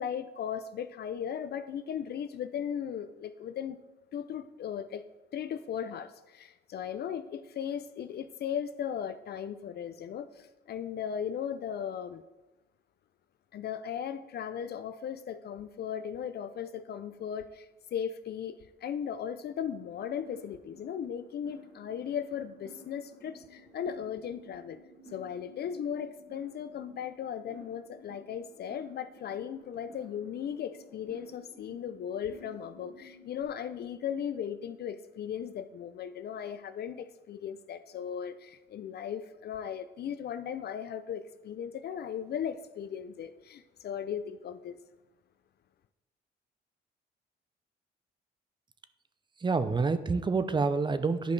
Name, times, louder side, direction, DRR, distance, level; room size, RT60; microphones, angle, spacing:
voice 1, 0.0-3.8 4.1-5.0 5.3-12.2 13.5-24.8 25.1-44.8, left 8 dB, 55° left, 12 dB, 0.4 m, -37 dB
sound 1, 19.6-33.4, equal, 65° right, 2.7 m, -54 dB
voice 2, 49.4-51.3, right 4 dB, 25° right, 12 dB, 0.5 m, -27 dB
10.5 x 5.1 x 3.3 m, 1.1 s
cardioid pair, 90°, 20 cm